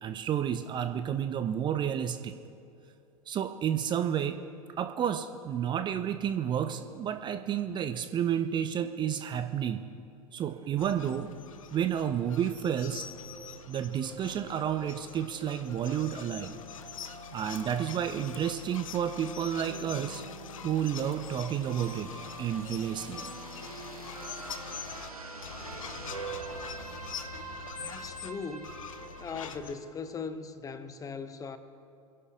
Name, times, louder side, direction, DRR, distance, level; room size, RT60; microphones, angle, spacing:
voice 1, 0.0-2.3 3.3-4.4 4.8-9.9 10.3-11.3 11.7-13.0 13.7-16.6 17.0-20.2 20.6-22.1 22.4-23.3, right 9 dB, 25° right, 9 dB, 0.6 m, -31 dB
sound 1, 10.8-25.1 25.4-28.3 28.6-29.8, left 8 dB, 65° left, 0.7 m, -44 dB
sound 2, 13.1-30.2, right 3 dB, 90° right, 1.3 m, -46 dB
voice 2, 27.8-28.7 29.2-31.6, left 5 dB, 20° left, 11 dB, 0.8 m, -39 dB
24.5 x 11.0 x 3.7 m, 2.6 s
figure-of-eight pair, 85°, 18 cm